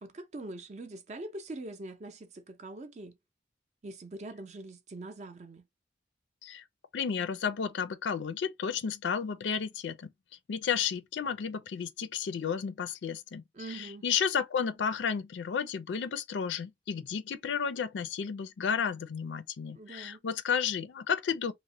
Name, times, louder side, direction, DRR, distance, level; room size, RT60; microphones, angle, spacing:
voice 1, 0.0-3.2 3.8-5.6 13.5-14.0 19.7-20.2, right 2 dB, 40° right, 0.5 m, -43 dB
voice 2, 6.9-10.1 10.5-21.5, left 7 dB, 75° left, 0.4 m, -32 dB
2.9 x 2.1 x 2.6 m
head